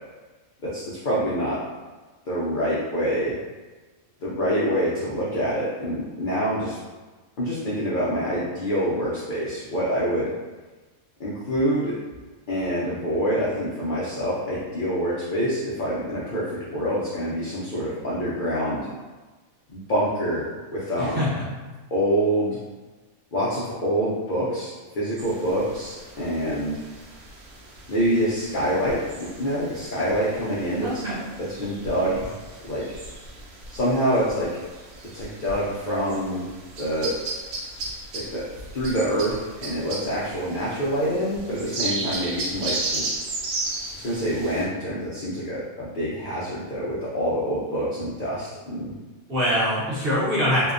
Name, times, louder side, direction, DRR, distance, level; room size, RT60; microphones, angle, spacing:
voice 1, 0.6-1.6 2.3-3.4 4.2-6.8 7.4-10.3 11.2-12.0 12.5-18.9 19.7-21.3 21.9-22.6 23.3-26.8 27.9-31.0 31.6-32.3 32.7-32.9 33.7-34.5 35.1-36.5 36.8-37.1 38.1-38.4 38.7-39.3 39.6-43.1 44.0-48.9, equal, 90° left, -8 dB, 0.4 m, -26 dB
voice 2, 21.0-21.5 30.8-31.2 49.3-50.7, equal, 50° right, -9 dB, 0.8 m, -24 dB
sound 1, 25.2-44.6, right 2 dB, 80° right, 1.0 m, -35 dB
2.6 x 2.2 x 2.4 m, 1.3 s
omnidirectional pair, 1.5 m